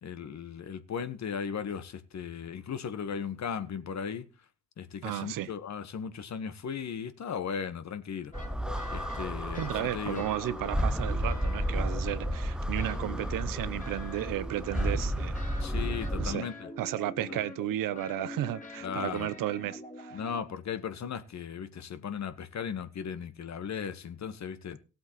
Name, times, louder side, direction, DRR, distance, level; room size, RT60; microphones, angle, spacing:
voice 1, 0.0-4.3 4.8-8.3 8.9-10.2 15.6-16.7 17.2-17.4 18.8-19.3 20.1-24.8, left 7 dB, 40° left, 1.5 m, -37 dB
voice 2, 5.0-5.5 9.6-15.4 16.2-16.5 16.8-20.2, right 13 dB, 55° right, 0.8 m, -33 dB
sound 1, 8.3-9.9 10.1-12.5 12.8-20.4, left 2 dB, 20° left, 2.6 m, -45 dB
sound 2, 8.3-16.3, equal, ahead, 0.5 m, -32 dB
18.0 x 7.9 x 3.2 m
hypercardioid pair, 60°, 40 cm